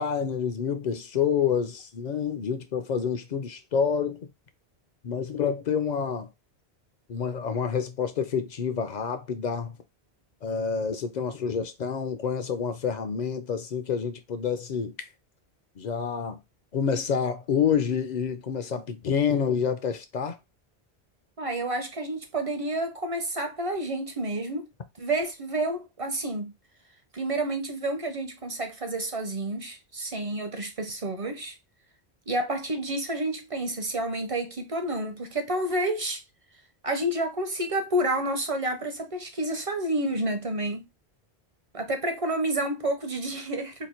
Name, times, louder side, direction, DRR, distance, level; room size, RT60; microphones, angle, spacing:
voice 1, 0.0-4.3 5.0-6.3 7.1-9.7 10.4-14.9 15.8-16.4 16.7-20.4, left 7 dB, 55° left, 0.5 m, -28 dB
voice 2, 21.4-24.7 25.0-26.5 27.1-31.6 32.3-36.2 36.8-40.8 41.7-43.9, right 1 dB, 40° right, 0.5 m, -29 dB
2.9 x 2.5 x 4.2 m
omnidirectional pair, 1.1 m